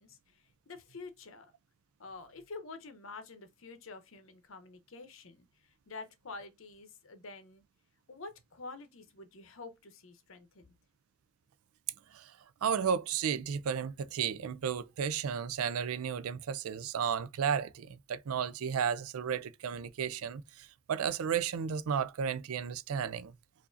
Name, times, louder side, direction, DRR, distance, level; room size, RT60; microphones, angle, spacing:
voice 1, 0.0-1.5 2.0-7.6 8.1-10.7, left 3 dB, 70° left, 0.8 m, -48 dB
voice 2, 12.6-23.3, right 7 dB, 90° right, 0.4 m, -33 dB
4.7 x 2.6 x 2.5 m
head